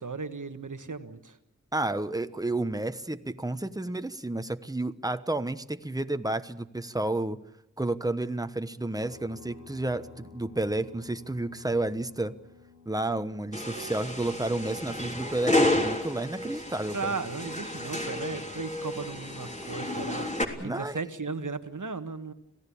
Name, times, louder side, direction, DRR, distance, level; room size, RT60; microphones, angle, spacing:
voice 1, 0.0-1.4 16.9-22.3, right 4 dB, 85° right, 9 dB, 1.4 m, -36 dB
voice 2, 1.7-7.4 7.8-12.4 12.8-17.1 20.6-21.0, right 2 dB, 10° right, 10 dB, 1.1 m, -31 dB
sound 1, 9.0-14.8, left 5 dB, 60° left, 6.1 m, -53 dB
sound 2, 13.5-20.4, left 1 dB, 25° left, 3.4 m, -31 dB
26.0 x 16.5 x 8.6 m, 0.87 s
wide cardioid pair, 45°, 30 cm